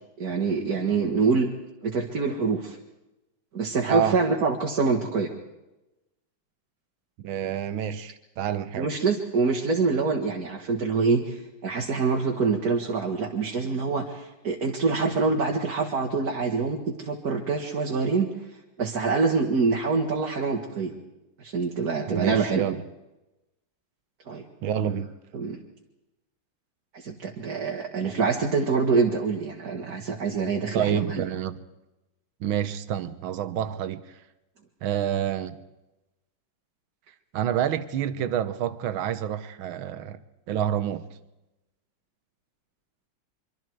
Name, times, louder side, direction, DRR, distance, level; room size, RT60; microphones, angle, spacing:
voice 1, 0.2-1.5 1.8-2.8 3.5-5.3 8.8-18.3 18.8-20.9 21.4-22.7 24.3-24.4 25.3-25.6 26.9-31.2, right 4 dB, 50° right, 2.1 m, -25 dB
voice 2, 3.9-4.2 7.2-8.9 22.1-22.8 24.6-25.1 30.7-31.6 32.4-34.2 34.8-35.6 37.3-40.2 40.5-41.1, right 10 dB, 80° right, 1.8 m, -28 dB
25.0 x 24.5 x 4.7 m
omnidirectional pair, 2.2 m